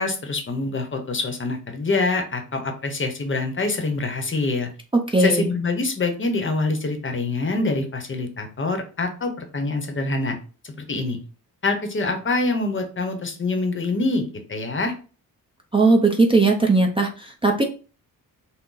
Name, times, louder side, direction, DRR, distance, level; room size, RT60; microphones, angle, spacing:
voice 1, 0.0-4.7 5.2-10.4 10.6-11.2 11.6-14.9, left 3 dB, 35° left, 5 dB, 0.9 m, -25 dB
voice 2, 5.1-5.5 15.7-17.6, right 3 dB, 15° right, 1 dB, 0.6 m, -18 dB
6.0 x 2.1 x 4.0 m, 0.36 s
wide cardioid pair, 145°, 36 cm